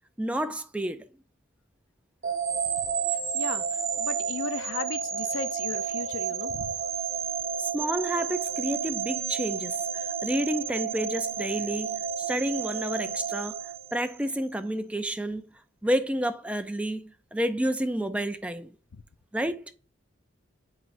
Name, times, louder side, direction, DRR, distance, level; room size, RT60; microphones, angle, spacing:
voice 1, 0.2-1.0 7.6-13.6 13.9-15.4 15.8-18.7 19.3-19.7, right 1 dB, 5° right, 0.4 m, -30 dB
sound 1, 2.2-14.4, right 7 dB, 75° right, 1.0 m, -31 dB
voice 2, 3.1-6.8 18.9-19.0, left 4 dB, 85° left, 0.6 m, -36 dB
8.1 x 4.6 x 2.5 m
head